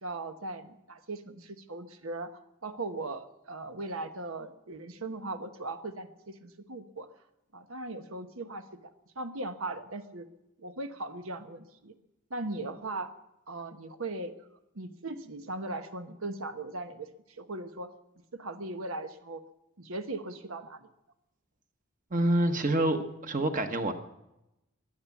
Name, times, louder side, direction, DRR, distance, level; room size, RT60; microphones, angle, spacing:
voice 1, 0.0-7.1 7.5-8.6 9.1-10.3 10.6-11.9 12.3-13.1 13.5-14.3 14.7-17.1 17.4-17.9 18.3-19.4 19.8-20.9, right 2 dB, 85° right, 8 dB, 1.3 m, -38 dB
voice 2, 22.1-23.9, right 1 dB, 40° right, 6 dB, 1.3 m, -27 dB
22.0 x 8.7 x 7.3 m, 0.92 s
head